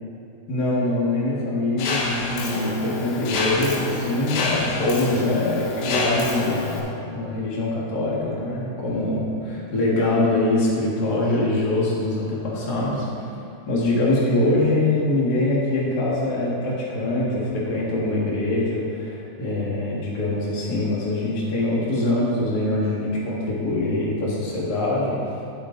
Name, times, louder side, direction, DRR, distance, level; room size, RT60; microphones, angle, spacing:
voice 1, 0.5-13.0 13.7-25.3, left 2 dB, 45° left, -5 dB, 1.3 m, -23 dB
Mechanisms, 1.8-6.8, left 3 dB, 80° left, 3.0 m, -28 dB
9.7 x 8.8 x 3.9 m, 2.5 s
omnidirectional pair, 4.6 m